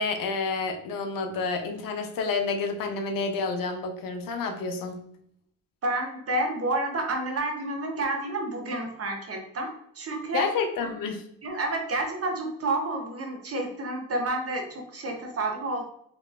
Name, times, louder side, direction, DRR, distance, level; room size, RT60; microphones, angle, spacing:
voice 1, 0.0-5.0 10.3-11.2, left 4 dB, 65° left, 5 dB, 0.6 m, -29 dB
voice 2, 5.8-10.5 10.8-10.9 11.4-15.9, right 2 dB, 40° right, 3 dB, 0.8 m, -30 dB
3.1 x 3.0 x 2.4 m, 0.69 s
supercardioid pair, 75°, 36 cm